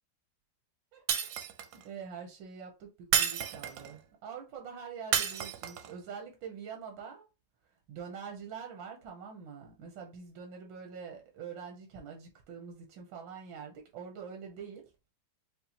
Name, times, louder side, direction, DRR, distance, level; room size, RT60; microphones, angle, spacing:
voice 1, 0.9-1.3 1.7-7.3 7.9-14.8, right 6 dB, 90° right, 1.6 m, -45 dB
Shatter, 1.1-1.8 3.1-3.9 5.1-5.9, right 8 dB, 70° right, 1.0 m, -30 dB
5.3 x 2.4 x 2.8 m
omnidirectional pair, 2.0 m